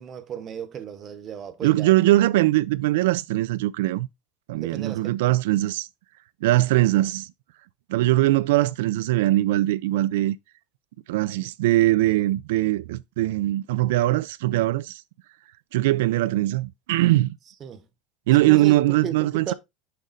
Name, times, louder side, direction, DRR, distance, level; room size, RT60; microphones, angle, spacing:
voice 1, 0.0-1.9 4.5-5.2 17.6-17.9 18.4-19.5, right 8 dB, 25° right, 0.8 m, -35 dB
voice 2, 1.6-4.1 4.5-5.9 6.4-7.3 7.9-10.4 11.1-15.0 15.7-17.4 18.3-19.5, right 16 dB, 90° right, 0.4 m, -21 dB
6.6 x 5.0 x 3.9 m
cardioid pair, 180°, 0 cm